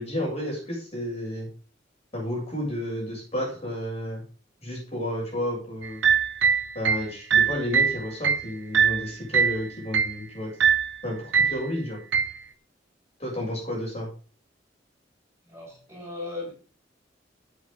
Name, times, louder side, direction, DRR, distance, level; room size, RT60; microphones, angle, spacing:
voice 1, 0.0-1.5 2.1-4.2 4.6-6.0 6.7-10.5 11.0-12.0 13.2-14.1, left 1 dB, 35° left, -2 dB, 7.7 m, -31 dB
sound 1, 5.8-9.6 9.9-10.2 10.6-11.0 11.3-11.7 12.1-12.4, right 7 dB, 85° right, 1.0 m, -22 dB
voice 2, 15.4-16.5, left 2 dB, 15° right, -4 dB, 7.1 m, -37 dB
14.0 x 8.5 x 3.9 m, 0.38 s
head